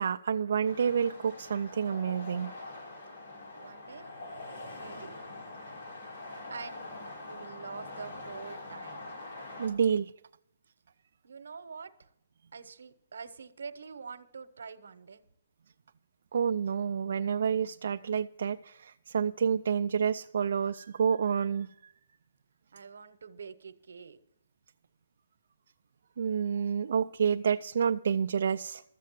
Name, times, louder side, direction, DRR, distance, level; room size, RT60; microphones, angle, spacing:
voice 1, 0.0-2.5 9.6-10.1 16.3-21.9 26.2-28.8, right 7 dB, 65° right, 6 dB, 0.4 m, -29 dB
sound 1, 0.6-9.7, left 2 dB, 80° left, 4.9 m, -44 dB
voice 2, 3.6-4.1 4.7-5.1 6.5-6.9 7.2-9.1 11.2-12.1 12.5-15.2 22.7-24.2, right 5 dB, 90° right, 11 dB, 1.0 m, -45 dB
13.0 x 7.6 x 7.4 m, 0.76 s
hypercardioid pair, 165°, 0 cm